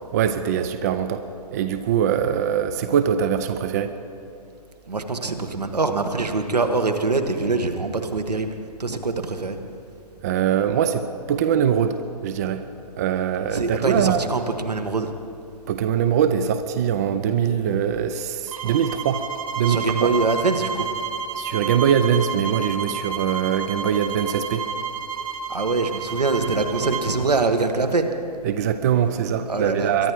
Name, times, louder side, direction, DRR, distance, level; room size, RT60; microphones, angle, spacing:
voice 1, 0.1-1.2 1.5-3.9 10.2-12.0 12.2-12.6 13.0-14.3 15.7-19.2 19.6-20.1 21.4-24.7 28.4-30.1, right 8 dB, 25° right, 10 dB, 0.5 m, -22 dB
voice 2, 4.9-8.5 8.8-9.6 13.5-15.1 19.7-20.9 25.5-28.1 29.5-30.1, right 3 dB, 80° right, 6 dB, 1.5 m, -24 dB
sound 1, 18.5-27.1, right 5 dB, 60° right, 1.3 m, -30 dB
23.0 x 11.0 x 4.7 m, 2.6 s
figure-of-eight pair, 135°, 20 cm